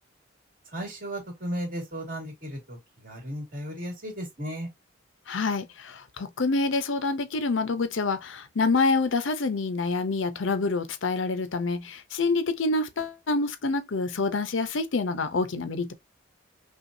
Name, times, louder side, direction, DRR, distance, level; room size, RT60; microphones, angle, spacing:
voice 1, 0.7-2.8 3.0-4.7, equal, 50° right, 2.5 m, -35 dB
voice 2, 5.3-15.9, left 3 dB, 85° left, 0.7 m, -27 dB
5.5 x 2.4 x 2.6 m
head